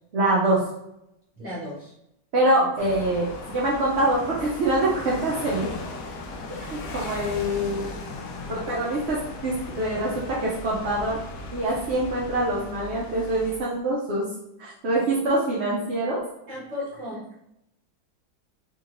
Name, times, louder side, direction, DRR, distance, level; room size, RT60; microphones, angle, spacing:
voice 1, 0.1-0.6 2.3-5.7 6.6-7.9 8.5-11.2 11.5-14.2 14.6-16.2, right 1 dB, 65° right, -6 dB, 0.6 m, -24 dB
voice 2, 1.3-1.9 2.3-2.7 16.5-17.3, left 1 dB, 25° right, -7 dB, 1.4 m, -36 dB
sound 1, 2.8-13.6, left 2 dB, 75° left, 0.8 m, -37 dB
3.8 x 3.0 x 2.5 m, 0.82 s
omnidirectional pair, 2.0 m